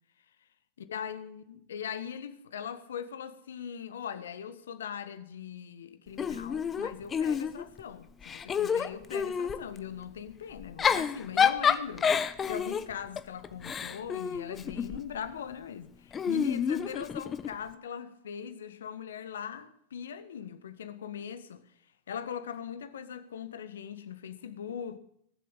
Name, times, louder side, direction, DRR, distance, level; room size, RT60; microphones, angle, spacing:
voice 1, 0.9-21.6 22.1-25.0, left 8 dB, 75° left, 1.4 m, -40 dB
Giggle / Chuckle chortle, 6.2-7.8 8.2-9.6 10.6-15.1 16.1-17.5, left 7 dB, 25° left, 1.1 m, -29 dB
19.5 x 7.9 x 8.3 m
hypercardioid pair, 95°, 0 cm